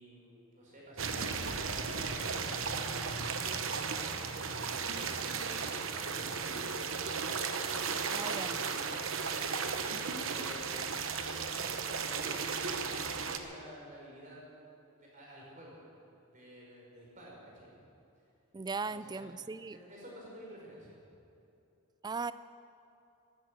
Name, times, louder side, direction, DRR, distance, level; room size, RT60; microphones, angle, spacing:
voice 1, 0.0-5.7 6.0-9.1 9.8-14.5 14.9-15.8 16.2-17.7 18.9-19.2 19.7-21.0, equal, 35° right, -3 dB, 4.8 m, -51 dB
sound 1, 1.0-13.4, right 5 dB, 60° right, 1.0 m, -35 dB
voice 2, 8.1-8.6 18.5-19.8 22.0-22.3, right 4 dB, 20° right, 15 dB, 0.3 m, -38 dB
13.5 x 13.0 x 8.0 m, 2.7 s
head